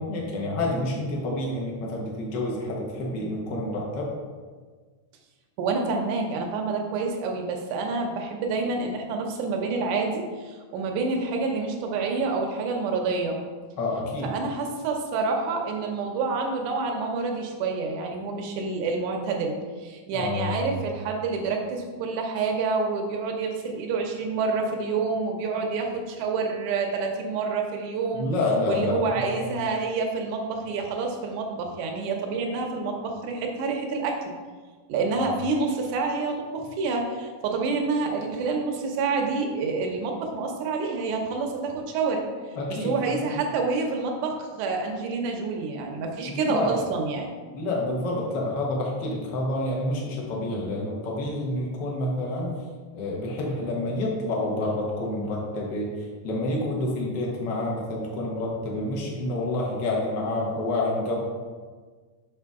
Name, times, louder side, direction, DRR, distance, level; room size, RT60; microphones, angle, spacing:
voice 1, 0.0-4.1 13.8-14.3 20.1-20.8 28.1-29.4 35.1-35.3 42.6-43.3 46.2-46.7 47.5-52.6 52.9-61.3, left 1 dB, 70° left, -2 dB, 1.0 m, -28 dB
voice 2, 5.6-13.4 14.3-28.3 28.7-34.2 34.9-47.3, right 4 dB, 80° right, 2 dB, 2.2 m, -28 dB
6.6 x 5.2 x 3.6 m, 1.5 s
omnidirectional pair, 3.5 m